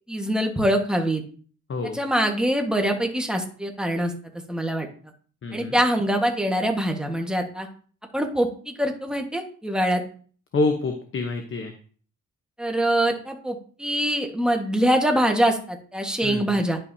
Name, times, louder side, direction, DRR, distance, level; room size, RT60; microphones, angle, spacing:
voice 1, 0.1-1.2 1.8-4.1 4.5-4.9 5.5-7.7 8.1-10.0 12.6-16.8, right 1 dB, ahead, 2 dB, 1.4 m, -24 dB
voice 2, 5.4-5.8 10.5-11.7 16.2-16.7, left 3 dB, 40° left, 5 dB, 1.0 m, -27 dB
10.5 x 5.7 x 2.7 m, 0.44 s
cardioid pair, 95°, 31 cm